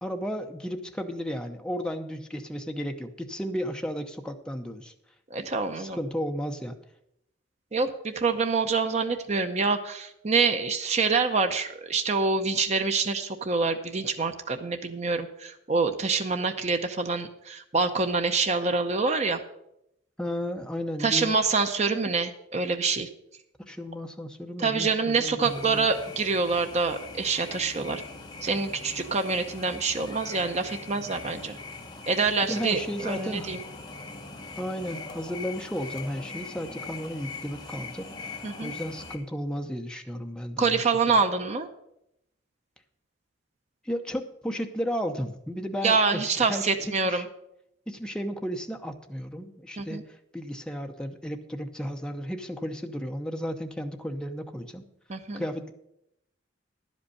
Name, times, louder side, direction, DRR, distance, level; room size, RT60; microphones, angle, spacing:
voice 1, 0.0-4.9 5.8-6.8 20.2-21.5 23.7-25.9 32.4-33.5 34.6-41.2 43.8-47.3 47.9-54.8 55.4-55.7, equal, 5° left, 5 dB, 0.7 m, -34 dB
voice 2, 5.3-6.0 7.7-19.4 21.0-23.1 24.6-28.0 28.4-31.6 32.1-33.6 38.4-38.7 40.6-41.7 45.8-47.2 49.8-50.0 55.1-55.4, right 4 dB, 35° right, 7 dB, 0.7 m, -26 dB
sound 1, 25.4-39.2, left 3 dB, 20° left, 1.2 m, -41 dB
11.0 x 5.3 x 8.3 m, 0.81 s
head